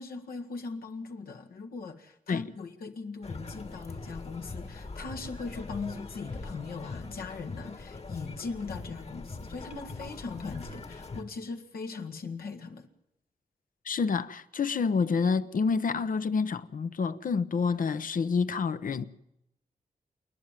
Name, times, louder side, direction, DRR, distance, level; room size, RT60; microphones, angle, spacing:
voice 1, 0.0-12.9, left 4 dB, 85° left, 1.8 m, -39 dB
sound 1, 3.2-11.2, left 3 dB, 45° left, 1.8 m, -42 dB
voice 2, 13.8-19.0, left 5 dB, 65° left, 0.9 m, -28 dB
28.0 x 10.5 x 9.1 m
cardioid pair, 55°, 15 cm